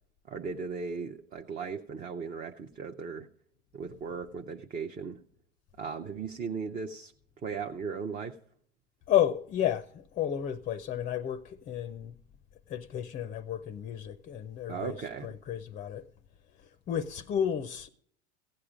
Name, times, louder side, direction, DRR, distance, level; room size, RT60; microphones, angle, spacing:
voice 1, 0.3-3.3 3.7-5.2 5.8-7.1 7.4-8.4 14.7-15.3, right 5 dB, 25° right, 0.6 m, -37 dB
voice 2, 9.1-12.1 12.7-14.9 15.2-16.0 16.9-17.9, left 10 dB, 25° left, 0.5 m, -31 dB
16.0 x 8.6 x 5.1 m
supercardioid pair, 115°, 35 cm